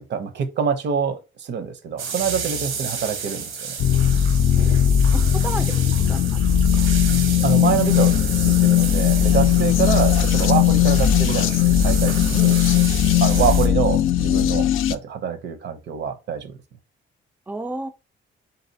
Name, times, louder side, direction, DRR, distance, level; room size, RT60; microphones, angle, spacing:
voice 1, 0.0-3.5 7.4-12.6 13.2-16.5, right 7 dB, 60° right, 0.6 m, -25 dB
sound 1, 2.0-13.7, right 6 dB, 80° right, 1.0 m, -31 dB
sound 2, 3.8-14.9, left 10 dB, 90° left, 0.4 m, -18 dB
voice 2, 5.1-6.9 17.5-17.9, right 2 dB, 10° right, 0.4 m, -33 dB
4.1 x 3.9 x 2.7 m
wide cardioid pair, 170°, 20 cm